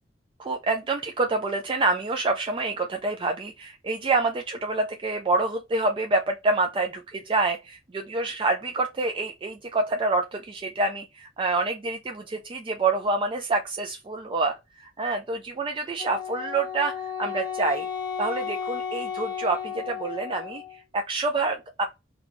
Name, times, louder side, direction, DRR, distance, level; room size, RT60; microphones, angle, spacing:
voice 1, 0.4-17.9 18.2-21.9, right 3 dB, 25° right, 0.4 m, -27 dB
Wind instrument woodwind instrument, 16.0-20.8, left 7 dB, 25° left, 0.7 m, -33 dB
4.1 x 2.3 x 2.9 m
head